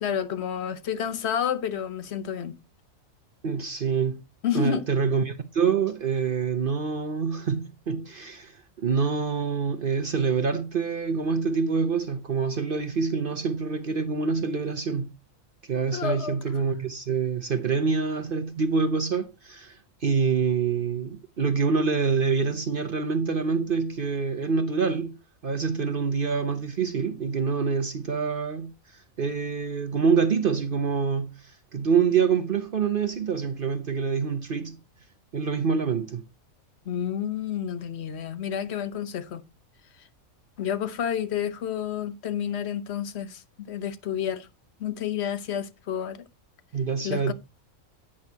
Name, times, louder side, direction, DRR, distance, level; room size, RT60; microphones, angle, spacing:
voice 1, 0.0-2.6 4.4-4.9 15.9-16.4 36.9-39.4 40.6-44.5 44.8-46.2 47.0-47.3, left 8 dB, 60° left, 1.0 m, -30 dB
voice 2, 3.4-4.2 4.5-15.2 15.6-25.2 25.4-34.8 35.3-36.2 46.7-47.3, right 5 dB, 50° right, 0.8 m, -26 dB
10.5 x 8.7 x 2.8 m
omnidirectional pair, 1.4 m